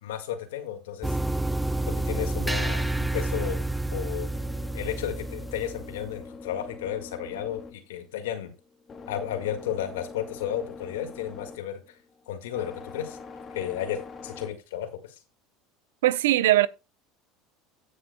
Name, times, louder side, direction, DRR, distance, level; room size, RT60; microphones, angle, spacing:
voice 1, 0.0-1.2 2.0-3.6 3.9-4.3 4.7-8.5 9.1-12.0 12.3-13.2 13.5-15.2, left 10 dB, 85° left, 1.8 m, -33 dB
sound 1, 1.0-6.1, right 2 dB, 5° right, 0.4 m, -29 dB
sound 2, 4.3-14.5, left 4 dB, 35° left, 2.0 m, -44 dB
voice 2, 16.0-16.7, right 15 dB, 85° right, 0.5 m, -20 dB
17.0 x 6.4 x 2.2 m
hypercardioid pair, 90°, 0 cm